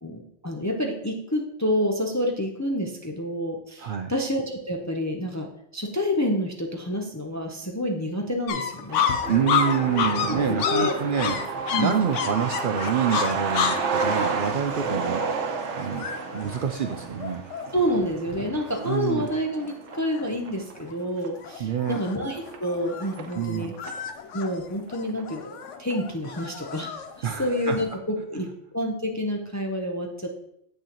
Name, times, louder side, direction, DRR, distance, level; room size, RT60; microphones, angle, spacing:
voice 1, 0.0-9.0 10.3-10.9 11.7-11.9 17.7-23.7 24.3-25.4 25.8-28.5 28.7-30.3, equal, 20° left, 1 dB, 0.5 m, -28 dB
voice 2, 3.8-4.1 9.3-11.4 11.8-15.3 15.8-17.4 18.8-19.3 21.6-22.0 23.4-23.7 27.2-27.8, right 7 dB, 60° right, 6 dB, 0.6 m, -27 dB
sound 1, 8.5-17.9 18.4-18.5 18.7-19.4 19.6-20.3 20.8-21.1 21.4-27.9, left 7 dB, 85° left, 1.0 m, -30 dB
Truck, 8.9-24.1 24.4-24.5 24.7-25.6 25.9-26.0 26.4-26.7, right 5 dB, 80° right, 1.1 m, -32 dB
sound 2, 9.2-15.0, right 1 dB, ahead, 2.1 m, -39 dB
8.0 x 6.4 x 2.9 m, 0.75 s
omnidirectional pair, 1.2 m